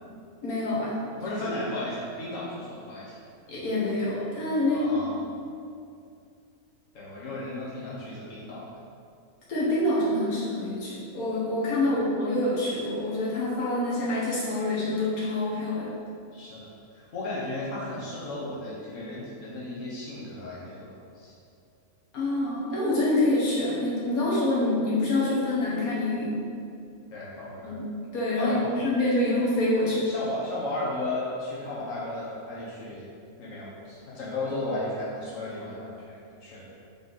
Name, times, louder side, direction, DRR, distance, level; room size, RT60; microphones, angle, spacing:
voice 1, 0.4-1.0 3.5-5.1 9.5-15.9 22.1-26.4 27.6-28.5 28.8-30.1, left 1 dB, 80° left, -7 dB, 1.8 m, -26 dB
voice 2, 1.1-3.2 4.7-5.2 6.9-8.7 11.9-12.0 16.3-21.4 27.1-27.8 28.4-28.7 30.0-33.0 33.4-36.6, left 2 dB, 65° left, -7 dB, 1.6 m, -35 dB
7.2 x 3.5 x 4.0 m, 2.4 s
omnidirectional pair, 1.5 m